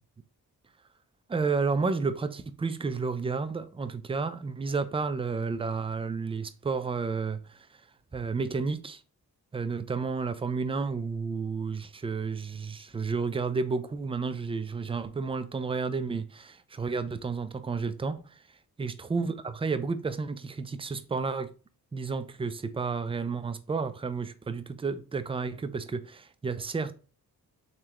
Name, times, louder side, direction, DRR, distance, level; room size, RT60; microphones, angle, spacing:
voice 1, 1.3-7.7 8.1-9.0 9.5-18.4 18.8-21.5 21.9-26.9, right 4 dB, 15° right, 0.4 m, -31 dB
3.7 x 3.2 x 3.0 m
cardioid pair, 85°, 38 cm